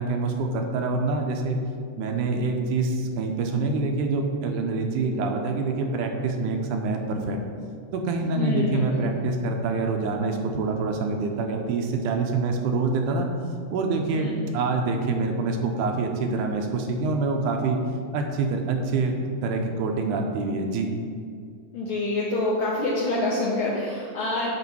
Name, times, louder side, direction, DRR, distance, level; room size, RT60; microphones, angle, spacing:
voice 1, 0.0-1.6 2.0-7.4 7.9-13.3 13.7-17.8 18.1-19.1 19.4-20.9, right 3 dB, 80° right, 3 dB, 2.2 m, -26 dB
voice 2, 8.3-9.0 14.1-14.3 21.7-24.5, left 2 dB, 80° left, -6 dB, 1.1 m, -26 dB
9.1 x 3.1 x 6.0 m, 2.3 s
omnidirectional pair, 3.6 m